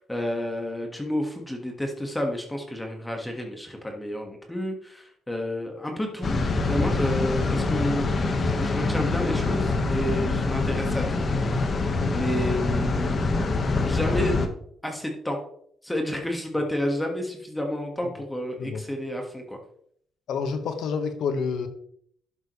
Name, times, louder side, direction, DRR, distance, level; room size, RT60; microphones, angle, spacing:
voice 1, 0.0-8.1 8.6-11.2 12.1-13.3 13.8-14.4 14.8-15.4 15.8-19.6, left 1 dB, 10° left, 1.8 m, -30 dB
sound 1, 6.2-14.5, left 3 dB, 40° left, 1.4 m, -25 dB
voice 2, 20.3-21.7, left 5 dB, 75° left, 1.4 m, -28 dB
11.5 x 7.3 x 3.2 m
cardioid pair, 90°, 0 cm